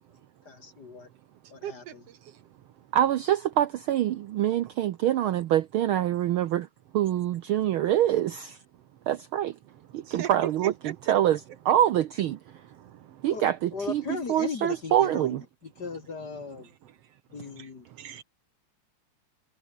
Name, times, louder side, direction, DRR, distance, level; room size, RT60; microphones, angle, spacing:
voice 1, 0.5-1.1 1.5-1.8 13.2-13.4 13.7-15.4 15.8-16.7 17.3-17.8, left 5 dB, 40° left, 2.0 m, -37 dB
voice 2, 1.6-1.9 10.1-11.8 12.5-13.5 13.8-14.2 14.7-14.8 16.6-16.7 17.6-17.7 18.0-18.2, right 11 dB, 65° right, 1.8 m, -41 dB
voice 3, 2.9-6.7 6.9-8.6 9.1-9.5 9.9-11.4 11.6-12.4 13.2-15.4, right 11 dB, 80° right, 1.2 m, -25 dB
omnidirectional pair, 3.3 m